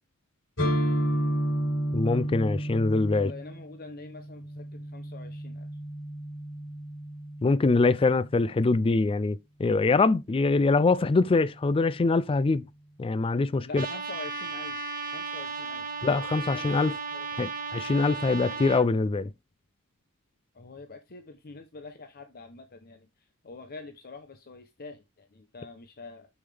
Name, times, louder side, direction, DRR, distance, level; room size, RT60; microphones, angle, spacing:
sound 1, 0.6-8.3, equal, 60° left, 5.7 m, -32 dB
voice 1, 1.9-3.3 7.4-12.6 13.0-13.9 16.0-17.0 17.4-19.3, left 3 dB, 25° left, 0.3 m, -24 dB
voice 2, 3.1-5.7 13.7-14.8 15.1-15.8 16.4-16.9 17.1-17.3 20.6-23.1 23.4-26.3, left 3 dB, 45° left, 0.9 m, -45 dB
Trumpet, 13.7-18.8, right 5 dB, 40° right, 1.6 m, -35 dB
7.1 x 6.8 x 3.4 m
head